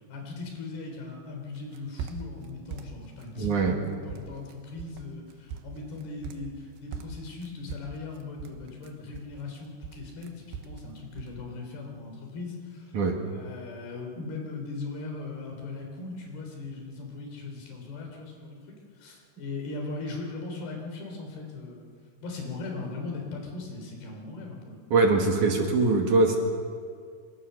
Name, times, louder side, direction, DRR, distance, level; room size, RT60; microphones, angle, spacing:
voice 1, 0.1-12.9 13.2-21.9 22.2-24.8, left 3 dB, 75° left, 2 dB, 5.7 m, -39 dB
sound 1, 1.6-2.5 2.7-3.8 4.1-4.5 4.8-5.0 5.3-6.6 6.9-9.6 9.8-10.8 11.1-11.4, right 6 dB, 80° right, 3.3 m, -40 dB
voice 2, 3.4-3.7 12.9-13.2 24.9-26.4, right 3 dB, 55° right, 2 dB, 3.2 m, -22 dB
25.0 x 25.0 x 6.9 m, 2.1 s
omnidirectional pair, 4.6 m